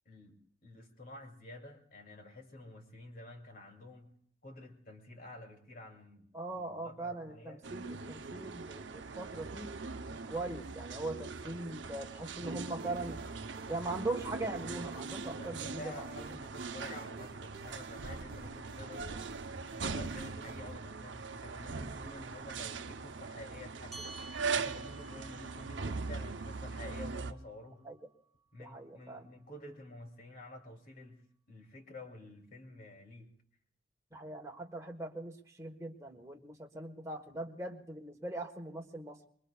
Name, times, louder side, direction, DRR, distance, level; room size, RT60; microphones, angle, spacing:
voice 1, 0.0-4.2 4.4-7.7 15.2-19.2 19.7-27.9 28.5-33.3, left 2 dB, 50° left, 3 dB, 2.7 m, -50 dB
voice 2, 6.3-9.7 10.1-13.2 13.7-16.4 27.8-28.0 28.6-29.3 34.1-39.3, right 2 dB, 15° right, 1 dB, 1.4 m, -41 dB
sound 1, 7.6-27.3, right 4 dB, 75° right, 0.7 m, -41 dB
sound 2, 12.8-20.8, right 3 dB, 55° right, 0.9 m, -50 dB
sound 3, 23.9-28.7, right 2 dB, ahead, 1.8 m, -54 dB
26.0 x 22.5 x 2.4 m, 0.63 s
head